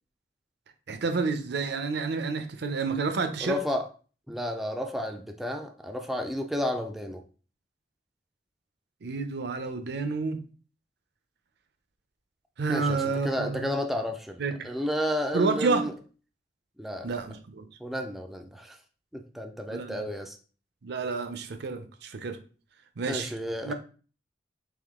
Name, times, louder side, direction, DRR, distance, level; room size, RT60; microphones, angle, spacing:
voice 1, 0.9-3.6 9.0-10.4 12.6-13.7 14.4-14.7 15.3-15.9 17.0-17.7 19.7-20.1 20.8-22.4 23.0-23.3 23.6-23.7, right 4 dB, 65° right, 0.5 m, -29 dB
voice 2, 3.4-3.8 4.3-7.2 12.7-14.4 14.6-15.9 16.8-17.2 17.8-18.8 19.1-20.4 23.1-23.7, equal, ahead, 0.3 m, -31 dB
3.6 x 3.0 x 3.6 m
head